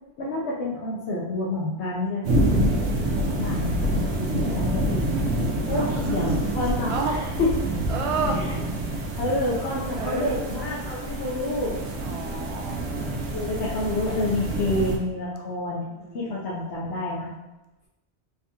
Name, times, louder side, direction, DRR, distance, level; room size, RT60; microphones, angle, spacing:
voice 1, 0.2-5.0 5.7-7.5 8.3-8.6 9.2-11.9 13.3-15.9 16.1-17.3, left 2 dB, 80° left, -6 dB, 1.0 m, -29 dB
sound 1, 2.2-15.0, right 1 dB, 90° right, 1.0 m, -27 dB
voice 2, 5.7-6.3 6.9-7.1 7.9-8.4 10.0-10.4 12.0-12.8 15.9-16.2 16.5-16.6, right 4 dB, 45° right, 2 dB, 0.4 m, -30 dB
3.6 x 3.4 x 2.7 m, 1.0 s
omnidirectional pair, 1.1 m